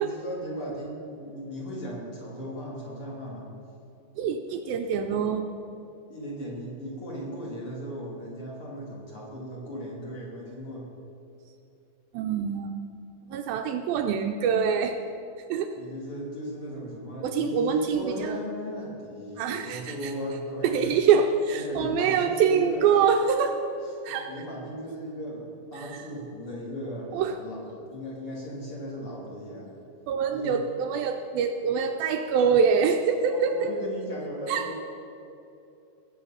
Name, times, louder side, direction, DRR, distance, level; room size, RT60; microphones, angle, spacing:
voice 1, 0.0-3.5 6.1-10.8 15.8-21.0 21.5-22.9 24.1-29.7 30.3-30.6 33.3-34.8, equal, 40° left, -4 dB, 2.8 m, -36 dB
voice 2, 4.2-5.5 12.1-12.7 13.3-15.0 15.5-15.7 17.2-18.4 19.4-20.1 20.6-23.6 24.0-24.3 25.8-25.9 27.1-27.4 30.1-33.7 34.5-34.7, right 6 dB, 80° right, 5 dB, 2.3 m, -25 dB
20.0 x 7.8 x 5.6 m, 2.7 s
omnidirectional pair, 4.5 m